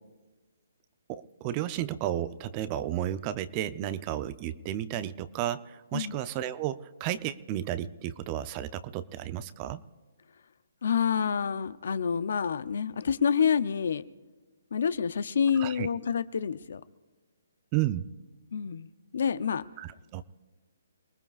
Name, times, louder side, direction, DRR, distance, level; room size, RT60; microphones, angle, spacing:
voice 1, 1.1-9.8 15.6-15.9 17.7-18.0 19.8-20.2, right 12 dB, 25° right, 13 dB, 0.6 m, -32 dB
voice 2, 10.8-14.0 14.7-16.8 18.5-19.6, left 7 dB, 65° left, 15 dB, 0.6 m, -28 dB
28.5 x 19.5 x 2.4 m, 1.3 s
hypercardioid pair, 150°, 0 cm